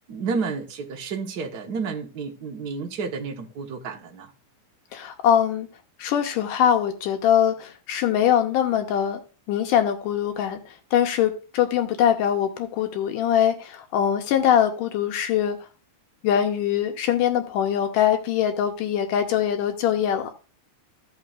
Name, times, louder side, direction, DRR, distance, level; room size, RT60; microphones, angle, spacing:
voice 1, 0.1-4.3, right 5 dB, 60° right, 1.0 m, -31 dB
voice 2, 4.9-5.7 6.0-9.2 9.5-15.6 16.2-20.3, left 9 dB, 80° left, 2.5 m, -22 dB
15.0 x 5.7 x 2.4 m
omnidirectional pair, 3.8 m